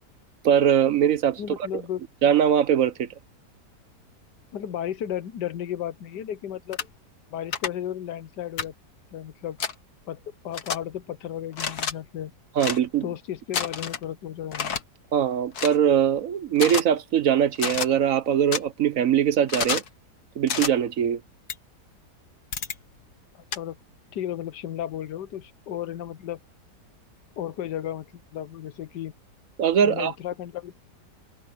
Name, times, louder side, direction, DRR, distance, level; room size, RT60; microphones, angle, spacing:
voice 1, 0.4-1.4 1.7-1.8 2.2-3.1 12.6-13.0 15.1-19.8 20.4-21.2 29.6-30.1, right 9 dB, 60° right, 1.3 m, -21 dB
voice 2, 1.4-2.0 4.5-6.8 7.3-8.7 9.1-9.6 10.0-12.3 13.0-14.7 23.5-23.8 24.1-26.4 27.4-29.1 29.8-30.8, left 11 dB, 90° left, 1.6 m, -34 dB
sound 1, 6.7-6.9 7.5-7.7 8.6-8.7 9.6-9.7 10.5-10.8 11.5-11.9 12.6-12.8 13.5-14.0 14.5-14.8 15.5-15.8 16.6-16.8 17.6-17.9 18.5-18.6 19.5-19.9 20.5-20.7 21.5-21.6 22.5-22.8 23.5-23.6, left 6 dB, 70° left, 2.0 m, -28 dB
omnidirectional pair, 1.8 m